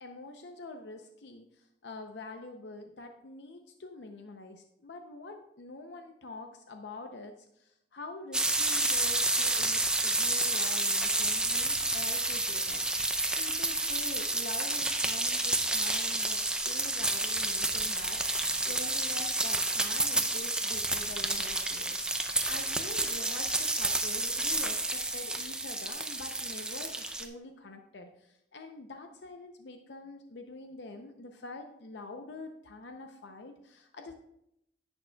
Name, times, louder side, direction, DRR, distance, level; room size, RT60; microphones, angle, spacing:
voice 1, 0.0-12.8 13.4-34.1, left 2 dB, 85° left, 5 dB, 0.6 m, -46 dB
sound 1, 8.3-27.2, right 2 dB, 5° right, 0.5 m, -30 dB
10.5 x 8.7 x 2.3 m, 0.80 s
head